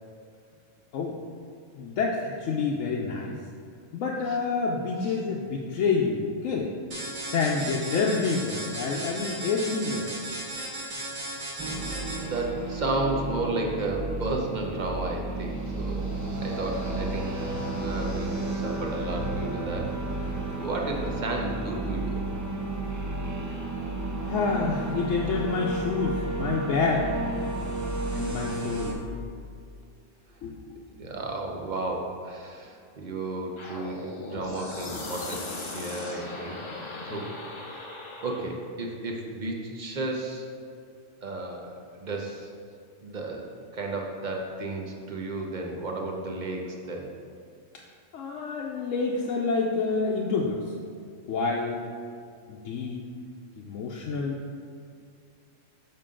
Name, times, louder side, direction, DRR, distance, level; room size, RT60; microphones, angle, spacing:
voice 1, 1.7-3.4 3.9-6.7 7.3-10.1 24.2-27.1 28.1-29.0 30.4-31.1 34.9-35.0 37.1-37.2 48.1-50.7 51.3-51.8 52.5-53.1 53.6-54.4, left 4 dB, 75° left, -2 dB, 1.0 m, -28 dB
sound 1, 6.9-12.5, right 1 dB, 85° right, 1.8 m, -36 dB
voice 2, 8.8-9.2 11.7-11.9 12.2-16.0 16.4-17.3 17.7-22.2 31.0-36.6 37.1-37.3 37.7-37.9 38.2-40.5 41.2-42.5 43.0-47.1, right 2 dB, 40° right, 1 dB, 0.8 m, -33 dB
sound 2, 11.6-28.9, right 2 dB, 20° right, 0.5 m, -32 dB
sound 3, 33.6-38.6, left 2 dB, 35° left, 0.4 m, -38 dB
6.7 x 5.4 x 3.7 m, 2.3 s
omnidirectional pair, 1.3 m